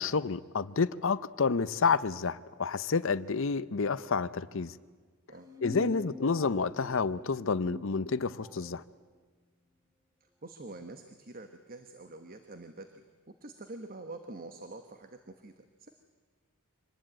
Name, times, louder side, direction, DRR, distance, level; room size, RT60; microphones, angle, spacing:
voice 1, 0.0-4.7 5.6-8.8, left 4 dB, 60° left, 0.7 m, -29 dB
sound 1, 5.3-8.7, left 1 dB, 15° right, 2.0 m, -45 dB
voice 2, 10.4-13.0 13.4-15.5 15.8-15.9, right 2 dB, 45° right, 1.2 m, -46 dB
25.5 x 20.0 x 9.0 m
head